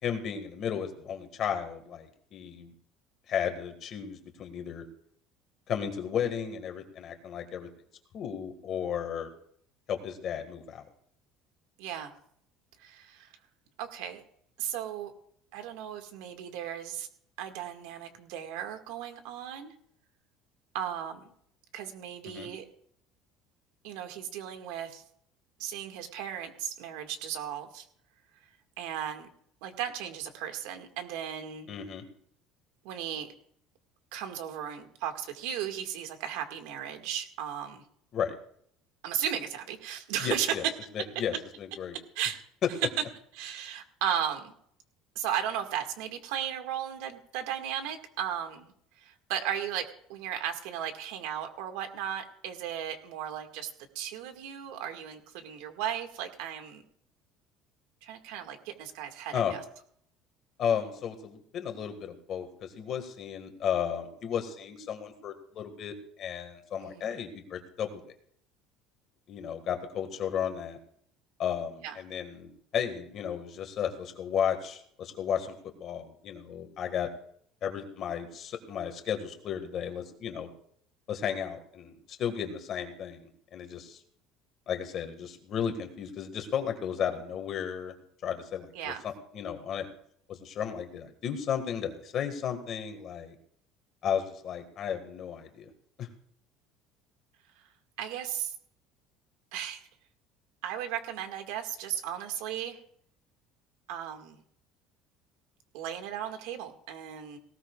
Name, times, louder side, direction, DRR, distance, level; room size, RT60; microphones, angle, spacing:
voice 1, 0.0-2.7 3.3-4.8 5.7-7.7 8.1-9.3 9.9-10.9 22.3-22.5 31.7-32.0 38.1-38.3 40.2-40.7 40.9-42.0 59.3-59.6 60.6-68.0 69.3-70.8 71.4-77.1 77.6-80.5 81.1-84.0 84.7-87.9 88.2-88.9 89.3-89.9 90.3-93.3 94.0-95.7 96.0-96.1, left 8 dB, 35° left, 5 dB, 1.8 m, -34 dB
voice 2, 11.8-12.1 12.8-13.3 13.8-14.2 14.6-15.1 15.5-17.1 17.4-19.7 20.7-21.3 21.7-22.7 23.8-25.0 25.6-27.8 28.8-29.3 29.6-31.7 32.8-33.3 34.1-37.8 39.0-40.5 42.2-42.4 43.4-44.5 45.2-48.7 49.0-53.7 54.0-56.8 58.0-59.6 66.8-67.1 71.8-72.0 88.7-89.0 98.0-98.5 99.5-99.9 100.6-102.8 103.9-104.4 105.7-107.4, right 9 dB, 90° right, 5 dB, 1.9 m, -35 dB
18.5 x 18.0 x 2.4 m, 0.66 s
cardioid pair, 175°, 0 cm